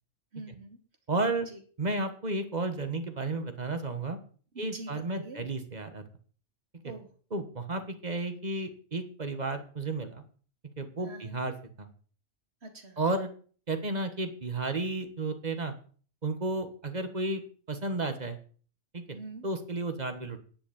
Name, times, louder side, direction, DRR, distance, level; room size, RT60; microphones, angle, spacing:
voice 1, 0.3-0.8 1.5-1.6 4.5-5.4 6.8-7.1 11.0-11.4 12.6-13.0 19.1-19.4, right 2 dB, 60° right, 4 dB, 2.5 m, -45 dB
voice 2, 1.1-1.5 1.8-4.2 4.6-6.0 6.8-6.9 7.3-10.2 10.8-11.9 13.0-13.3 13.7-15.7 16.2-17.4 17.7-18.4 18.9-19.0 19.4-20.4, right 2 dB, 35° right, 8 dB, 1.5 m, -32 dB
10.5 x 6.2 x 8.6 m, 0.44 s
omnidirectional pair, 1.2 m